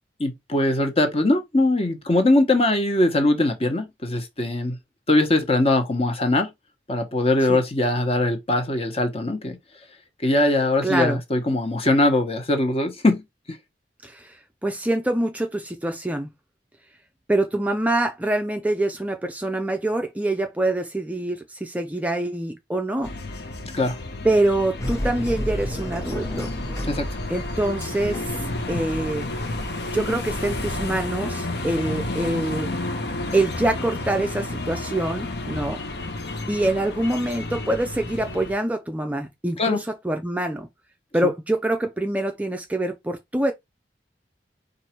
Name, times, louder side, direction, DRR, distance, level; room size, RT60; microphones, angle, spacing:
voice 1, 0.2-4.8 5.1-6.5 6.9-9.6 10.2-13.2 23.7-24.0 26.9-27.1 39.6-39.8, left 2 dB, 35° left, 1.1 m, -21 dB
voice 2, 10.8-11.2 14.0-14.4 14.6-16.3 17.3-23.1 24.2-26.5 27.3-28.4 28.7-29.3 29.9-32.7 33.3-35.8 36.5-40.7 41.1-43.5, right 1 dB, 10° right, 0.4 m, -25 dB
sound 1, 23.0-38.5, left 2 dB, 65° left, 1.0 m, -31 dB
sound 2, 24.8-31.1, left 1 dB, 20° left, 0.8 m, -33 dB
4.7 x 2.6 x 4.4 m
head